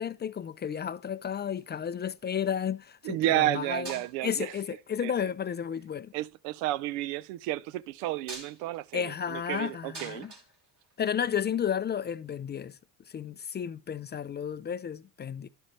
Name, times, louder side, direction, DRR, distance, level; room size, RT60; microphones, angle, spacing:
voice 1, 0.0-3.9 4.2-6.1 8.9-10.3 11.0-12.8 13.1-15.5, left 8 dB, 25° left, 0.3 m, -32 dB
sound 1, 1.6-2.2 3.4-3.5 3.8-4.5 5.4-5.9 8.0-11.4 12.7-12.8, right 3 dB, 45° right, 3.0 m, -46 dB
voice 2, 3.0-4.5 5.0-5.1 6.1-10.3, right 15 dB, 75° right, 0.5 m, -31 dB
11.5 x 5.7 x 3.1 m
supercardioid pair, 65°, 42 cm